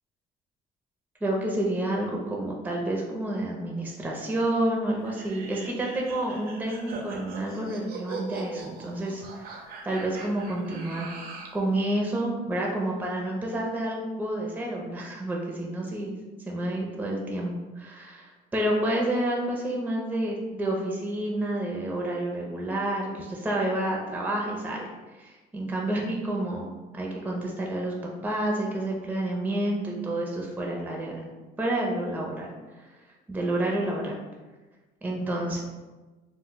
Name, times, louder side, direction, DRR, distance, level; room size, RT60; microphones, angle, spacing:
voice 1, 1.2-11.1 11.5-16.1 16.5-24.9 25.2-27.9 28.2-31.3 31.6-32.5 33.3-34.2 35.0-35.6, right 1 dB, 10° right, -1 dB, 0.4 m, -29 dB
sound 1, 5.0-11.6, right 3 dB, 60° right, 0.5 m, -40 dB
2.1 x 2.0 x 3.7 m, 1.2 s
cardioid pair, 110°, 17 cm